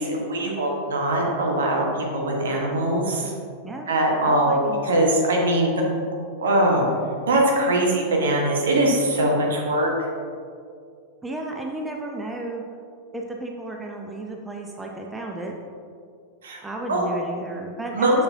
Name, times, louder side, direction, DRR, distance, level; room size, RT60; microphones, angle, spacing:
voice 1, 0.0-1.8 2.1-3.3 3.9-4.6 4.8-5.7 6.4-6.9 7.3-9.9 16.4-16.6 16.9-17.1 17.9-18.2, right 1 dB, 65° right, -1 dB, 1.2 m, -21 dB
voice 2, 4.2-4.8 11.2-12.6 13.1-15.6 16.6-18.2, right 1 dB, 10° right, 1 dB, 0.6 m, -33 dB
6.8 x 6.7 x 2.7 m, 2.3 s
figure-of-eight pair, 90°, 0 cm